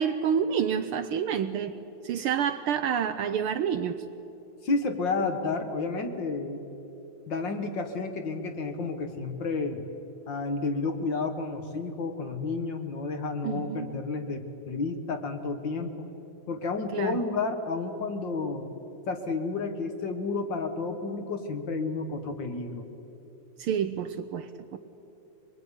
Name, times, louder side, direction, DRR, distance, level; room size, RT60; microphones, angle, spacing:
voice 1, 0.0-1.8 2.0-4.0 13.4-13.9 16.9-17.2 23.6-24.8, right 8 dB, 90° right, 8 dB, 1.2 m, -28 dB
voice 2, 4.6-6.6 7.3-9.8 10.3-16.1 16.5-18.7 19.1-22.9, left 3 dB, 45° left, 7 dB, 2.0 m, -31 dB
24.0 x 22.0 x 9.9 m, 3.0 s
omnidirectional pair, 3.4 m